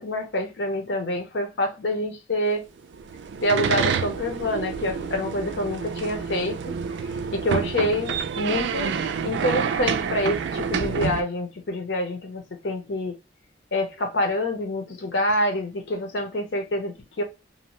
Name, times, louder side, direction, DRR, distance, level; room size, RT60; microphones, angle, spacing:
voice 1, 0.0-2.6 3.4-6.8 7.3-13.2 13.7-17.2, left 1 dB, 75° left, 0.8 m, -27 dB
sound 1, 2.9-11.2, right 6 dB, 75° right, 0.3 m, -28 dB
2.7 x 2.1 x 3.0 m
head